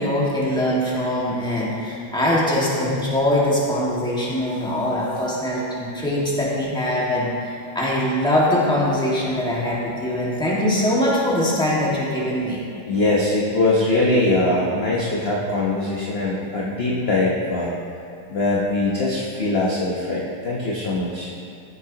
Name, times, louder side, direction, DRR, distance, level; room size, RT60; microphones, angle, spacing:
voice 1, 0.0-12.6, left 1 dB, ahead, -6 dB, 1.5 m, -22 dB
voice 2, 12.9-17.7 18.3-21.3, left 2 dB, 45° left, -5 dB, 0.9 m, -22 dB
14.0 x 8.4 x 2.9 m, 2.6 s
omnidirectional pair, 2.3 m